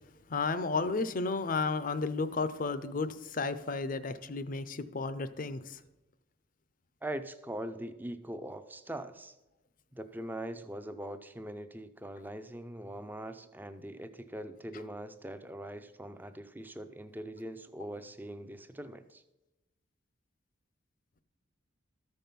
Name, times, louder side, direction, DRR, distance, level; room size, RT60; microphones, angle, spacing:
voice 1, 0.3-5.8, left 4 dB, 40° left, 13 dB, 0.5 m, -33 dB
voice 2, 7.0-9.4 9.9-19.2, right 1 dB, 10° right, 10 dB, 0.5 m, -42 dB
13.5 x 5.4 x 5.8 m, 0.98 s
head